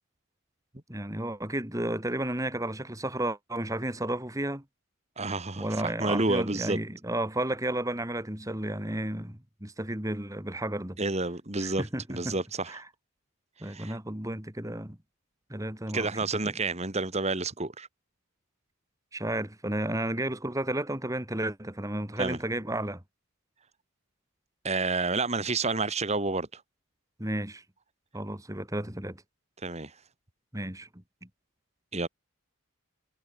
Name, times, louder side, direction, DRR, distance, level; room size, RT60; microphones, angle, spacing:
voice 1, 0.9-4.6 5.6-11.0 11.6-12.3 12.7-12.8 13.6-15.0 15.5-16.1 16.5-16.6 19.1-23.0 27.2-27.6 28.1-29.2 30.5-31.3, right 1 dB, 15° right, 2.4 m, -32 dB
voice 2, 5.2-6.8 11.0-12.8 13.6-14.0 15.9-17.9 22.2-22.4 24.6-26.6 29.6-29.9 31.9-32.1, right 3 dB, 30° right, 2.2 m, -30 dB
head